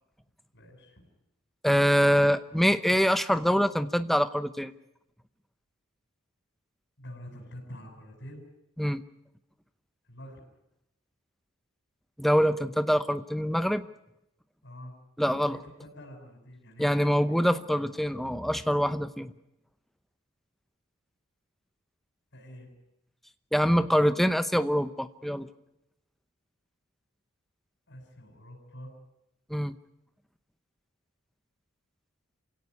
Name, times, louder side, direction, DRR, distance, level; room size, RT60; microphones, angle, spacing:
voice 1, 0.5-1.0 7.0-8.4 10.1-10.4 14.6-14.9 15.4-17.4 22.3-22.7 27.9-28.9, equal, 55° left, 0 dB, 7.3 m, -46 dB
voice 2, 1.6-4.7 8.8-9.0 12.2-13.9 15.2-15.6 16.8-19.3 23.5-25.5 29.5-29.8, equal, ahead, 11 dB, 0.8 m, -24 dB
27.5 x 17.0 x 9.7 m, 0.87 s
head